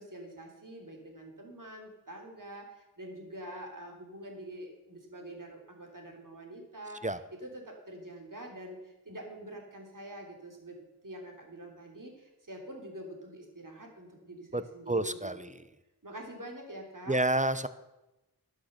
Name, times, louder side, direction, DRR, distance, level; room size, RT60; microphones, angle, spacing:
voice 1, 0.0-10.8 11.0-15.5 16.0-17.2, right 1 dB, 55° right, 1 dB, 3.2 m, -46 dB
voice 2, 14.5-15.5 17.1-17.7, right 1 dB, 20° right, 13 dB, 0.7 m, -29 dB
11.5 x 8.9 x 6.6 m, 0.98 s
wide cardioid pair, 40°, 38 cm